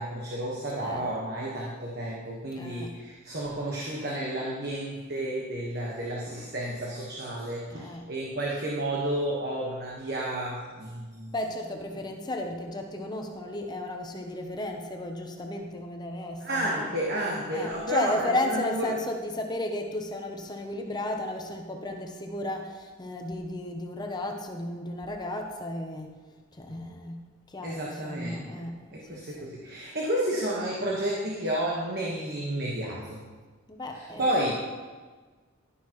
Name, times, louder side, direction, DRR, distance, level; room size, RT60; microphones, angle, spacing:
voice 1, 0.0-11.3 16.4-18.9 27.6-28.5 28.9-33.2 33.9-34.5, right 1 dB, 50° right, -3 dB, 1.3 m, -31 dB
voice 2, 0.8-1.1 2.5-2.9 7.7-8.1 11.3-16.9 17.5-26.1 26.5-29.5 33.7-34.5, left 1 dB, 20° left, 3 dB, 0.7 m, -34 dB
11.5 x 10.0 x 3.1 m, 1.4 s
head